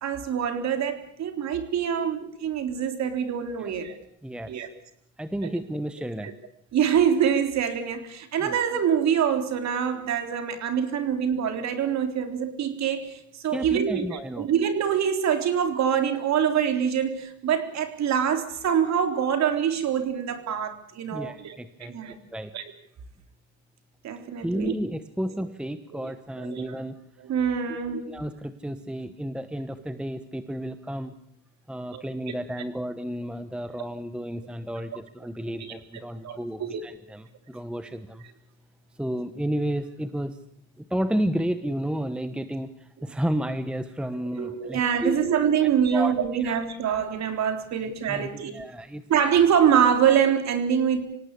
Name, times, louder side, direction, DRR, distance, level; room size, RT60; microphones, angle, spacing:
voice 1, 0.0-4.0 4.5-4.7 5.4-5.5 6.2-6.3 6.7-22.2 22.5-22.6 24.0-24.7 25.9-26.1 26.4-26.8 27.2-28.2 31.9-32.0 35.6-35.7 36.2-36.8 44.4-48.6 49.1-51.1, right 8 dB, 40° right, 7 dB, 3.7 m, -25 dB
voice 2, 4.2-4.5 5.2-6.3 8.4-8.5 13.5-14.5 21.1-22.5 24.4-27.0 28.1-31.1 31.7-38.3 39.0-40.4 40.9-45.2 45.9-46.1 46.4-46.6 47.8-49.0, right 1 dB, ahead, 11 dB, 1.1 m, -32 dB
26.5 x 18.0 x 8.4 m, 0.72 s
supercardioid pair, 115°, 40 cm